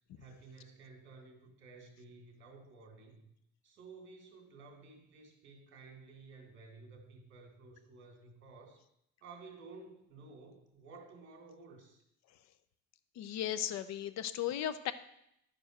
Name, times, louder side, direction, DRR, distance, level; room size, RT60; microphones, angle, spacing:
voice 1, 0.2-3.3 3.6-8.8 9.2-12.0, right 3 dB, 35° right, 3 dB, 2.6 m, -54 dB
voice 2, 13.2-14.9, left 11 dB, 60° left, 13 dB, 0.7 m, -36 dB
11.0 x 4.9 x 6.6 m, 0.78 s
cardioid pair, 135°, 31 cm